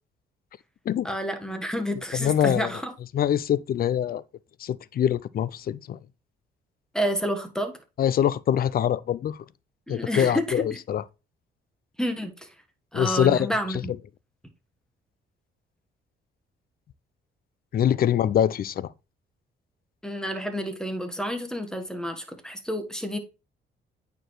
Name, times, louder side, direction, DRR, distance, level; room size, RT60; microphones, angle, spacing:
voice 1, 1.0-2.9 6.9-7.8 9.9-10.6 12.0-12.5 12.9-13.9 20.0-23.2, equal, 5° left, 1.2 m, -29 dB
voice 2, 2.1-2.7 3.1-4.2 4.6-6.0 8.0-9.4 9.9-11.0 12.9-13.5 17.7-18.9, left 10 dB, 50° left, 0.4 m, -24 dB
9.0 x 4.6 x 3.0 m
cardioid pair, 90°, 20 cm